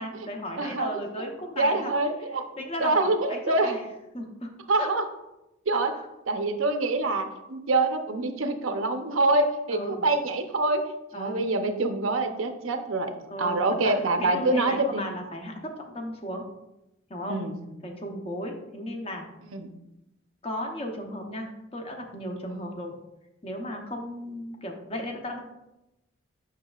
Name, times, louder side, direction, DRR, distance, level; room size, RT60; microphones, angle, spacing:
voice 1, 0.0-1.9 2.6-3.9 4.1-4.9 5.7-6.0 9.7-10.0 11.1-11.4 13.3-13.9 14.2-16.4 17.1-17.4 17.8-19.3 20.4-22.9 23.4-25.5, equal, 30° left, 2 dB, 0.8 m, -35 dB
voice 2, 0.6-0.9 1.6-2.4 2.8-3.7 4.7-5.0 5.7-5.9 6.3-10.8 11.1-13.1 13.4-15.0 17.3-17.6 19.5-19.7, right 2 dB, 80° right, 6 dB, 0.7 m, -25 dB
7.4 x 6.0 x 2.4 m, 0.94 s
head